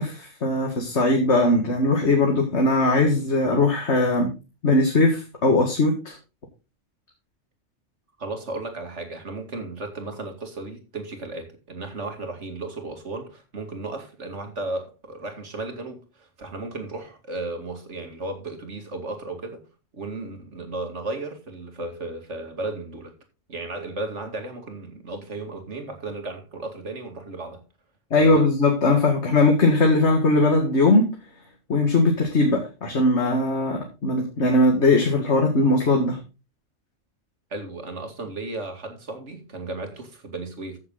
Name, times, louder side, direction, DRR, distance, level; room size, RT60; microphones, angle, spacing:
voice 1, 0.0-4.3 4.6-6.2 28.1-31.1 31.7-36.2, left 2 dB, 65° left, 2.2 m, -20 dB
voice 2, 8.2-19.6 19.9-23.1 23.5-27.6 28.2-28.5 37.5-40.8, right 2 dB, 70° right, 2.6 m, -34 dB
14.5 x 7.1 x 3.9 m
omnidirectional pair, 1.3 m